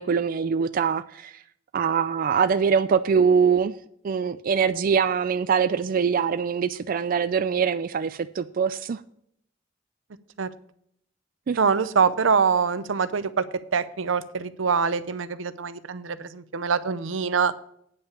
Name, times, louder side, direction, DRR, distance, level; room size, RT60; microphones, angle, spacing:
voice 1, 0.0-1.3 1.7-3.8 4.0-9.0 11.5-11.6, right 6 dB, 45° right, 0.4 m, -23 dB
voice 2, 11.6-17.5, right 5 dB, 85° right, 0.7 m, -24 dB
9.2 x 5.6 x 6.8 m
head